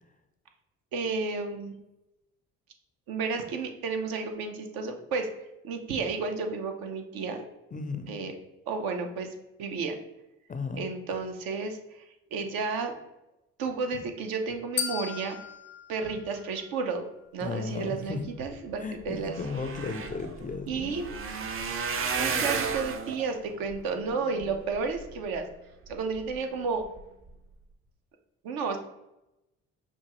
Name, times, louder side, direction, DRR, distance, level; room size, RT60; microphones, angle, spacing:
voice 1, 0.9-1.7 3.1-5.3 5.6-7.5 8.1-8.4 8.7-9.9 10.7-12.9 13.6-15.4 15.9-19.4 20.7-21.1 22.2-25.5 25.9-26.8 28.4-28.8, right 4 dB, 70° right, 5 dB, 0.7 m, -32 dB
voice 2, 7.7-8.1 10.5-10.9 17.4-18.2 18.8-20.9, left 4 dB, 20° left, 7 dB, 0.4 m, -35 dB
sound 1, 14.8-17.0, left 9 dB, 90° left, 0.5 m, -36 dB
sound 2, 18.7-18.8 19.0-25.4 25.9-26.4 26.8-27.0 27.3-27.4, right 5 dB, 35° right, 0.6 m, -34 dB
5.3 x 2.3 x 2.9 m, 0.91 s
hypercardioid pair, 55°, 38 cm